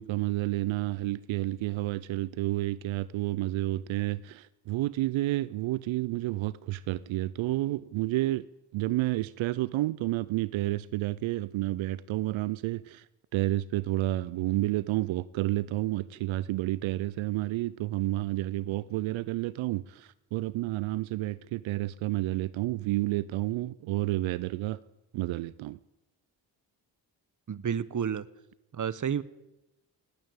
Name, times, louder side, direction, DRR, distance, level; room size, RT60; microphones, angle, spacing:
voice 1, 0.0-8.5 8.7-13.1 13.3-24.8 25.1-25.8, right 17 dB, 80° right, 0.6 m, -30 dB
voice 2, 27.5-28.3 28.7-29.2, right 8 dB, 40° right, 0.9 m, -30 dB
18.5 x 8.8 x 8.8 m
supercardioid pair, 50°, 46 cm